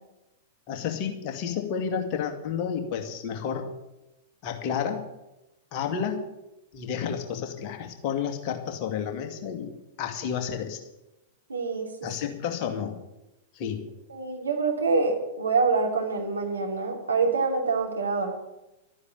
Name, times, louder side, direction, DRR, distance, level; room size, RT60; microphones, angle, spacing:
voice 1, 0.7-3.7 4.4-5.0 5.7-6.2 6.7-9.7 10.0-10.8 12.0-13.0 13.5-13.9, left 7 dB, 40° left, 3 dB, 2.3 m, -31 dB
voice 2, 11.5-12.0 14.1-18.3, right 4 dB, 75° right, 3 dB, 3.0 m, -26 dB
13.0 x 9.7 x 8.5 m, 0.95 s
figure-of-eight pair, 100°, 0 cm